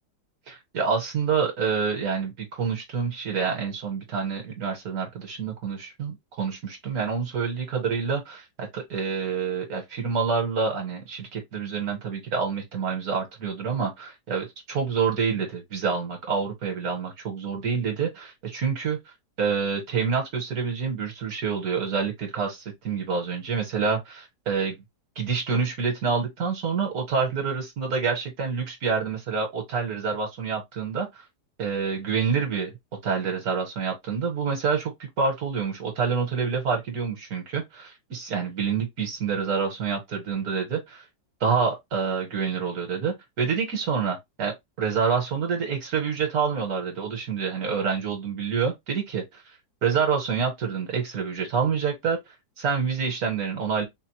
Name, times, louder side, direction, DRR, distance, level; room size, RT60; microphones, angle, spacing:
voice 1, 0.5-19.0 19.4-24.8 25.2-31.2 31.6-32.7 33.0-41.0 41.4-49.4 49.8-52.2 52.6-53.8, right 6 dB, 60° right, 1.3 m, -27 dB
4.1 x 2.0 x 2.9 m
omnidirectional pair, 1.9 m